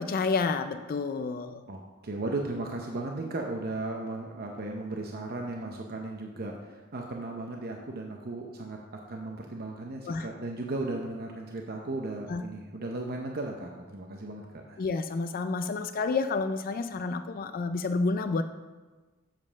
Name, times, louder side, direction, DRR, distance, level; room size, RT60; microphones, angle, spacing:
voice 1, 0.0-1.6 10.1-10.3 12.3-12.4 14.8-18.4, left 4 dB, 45° left, 9 dB, 0.4 m, -29 dB
voice 2, 1.7-14.8, right 2 dB, 45° right, 1 dB, 0.7 m, -36 dB
7.5 x 5.3 x 6.3 m, 1.3 s
head